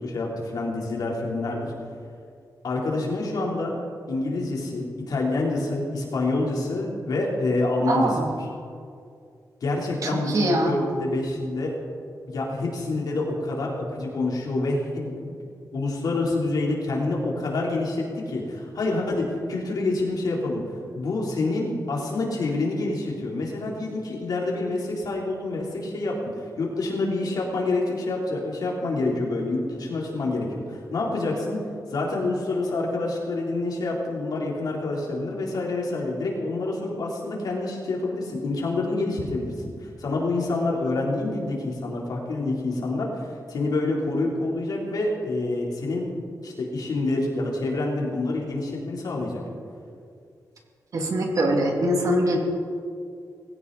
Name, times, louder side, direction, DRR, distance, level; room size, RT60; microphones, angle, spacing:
voice 1, 0.0-1.7 2.6-3.8 4.1-8.2 9.6-11.7 12.3-15.2 15.7-20.6 20.9-26.2 26.6-31.6 31.9-39.7 40.0-43.2 43.5-46.1 46.4-49.4, left 2 dB, 70° left, -2 dB, 3.8 m, -27 dB
voice 2, 7.9-8.3 10.0-10.8 50.9-52.4, right 1 dB, 55° right, 1 dB, 2.5 m, -23 dB
19.5 x 17.0 x 4.2 m, 2.3 s
wide cardioid pair, 150°, 7 cm